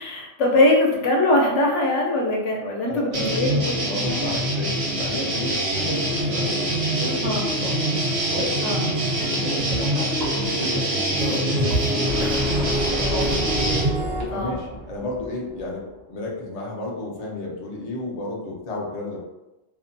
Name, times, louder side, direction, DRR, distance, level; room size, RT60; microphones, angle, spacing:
voice 1, 0.0-3.7 7.2-7.4 8.6-8.9 13.0-13.2 14.3-14.6, left 1 dB, 80° left, -1 dB, 0.9 m, -22 dB
voice 2, 2.8-7.8 8.3-8.6 9.3-13.4 14.3-19.2, left 2 dB, 45° left, -2 dB, 0.5 m, -32 dB
sound 1, 3.1-13.8, right 1 dB, 80° right, 1.1 m, -25 dB
sound 2, 5.8-14.2, right 2 dB, 65° right, 0.8 m, -28 dB
sound 3, 12.0-16.0, equal, 45° right, 0.5 m, -32 dB
2.6 x 2.1 x 2.5 m, 1.0 s
omnidirectional pair, 1.2 m